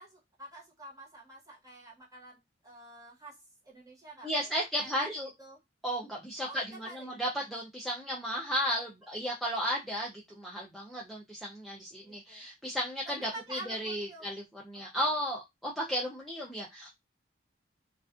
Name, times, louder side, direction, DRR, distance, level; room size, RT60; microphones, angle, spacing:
voice 1, 0.0-2.4 2.6-3.4 3.6-5.1 5.4-5.6 6.4-7.2 12.0-12.4 13.1-14.3 14.7-15.1, right 2 dB, 20° right, 1.1 m, -48 dB
voice 2, 4.2-5.3 5.8-16.9, equal, ahead, 0.5 m, -34 dB
2.4 x 2.3 x 2.4 m
head